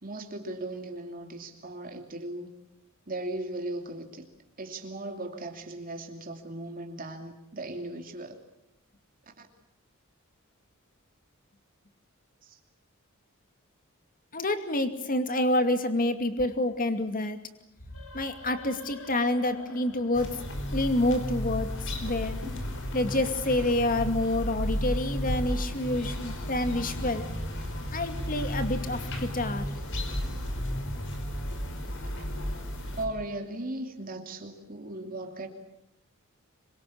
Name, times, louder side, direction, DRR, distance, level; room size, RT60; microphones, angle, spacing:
voice 1, 0.0-2.5 3.1-4.2 4.6-8.4 9.4-9.5 12.4-12.6 32.1-32.2 32.9-35.5, right 2 dB, 40° right, 4 dB, 2.8 m, -37 dB
voice 2, 14.3-17.4 18.1-20.4 20.7-22.4 22.9-27.3 27.9-29.7, left 1 dB, 40° left, 8 dB, 2.5 m, -28 dB
sound 1, 17.7-21.3, left 2 dB, 85° left, 4.9 m, -48 dB
sound 2, 20.1-33.0, equal, 60° left, 4.9 m, -33 dB
26.5 x 23.5 x 8.6 m, 0.84 s
head